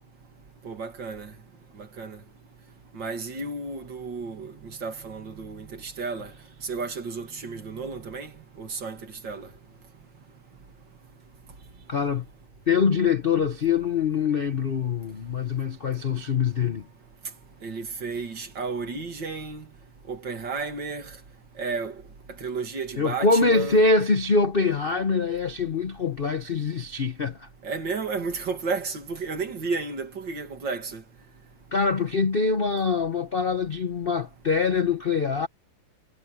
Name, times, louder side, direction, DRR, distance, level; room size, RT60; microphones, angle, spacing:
voice 1, 0.6-1.3 2.0-2.2 2.9-6.3 6.6-8.3 8.6-9.0 9.2-9.5 17.6-19.6 20.1-21.1 21.6-21.9 22.4-23.8 27.6-31.0, right 4 dB, 60° right, 2.9 m, -32 dB
voice 2, 11.9-12.3 12.7-16.9 23.0-27.5 31.7-35.5, left 4 dB, 50° left, 0.7 m, -24 dB
omnidirectional pair, 2.3 m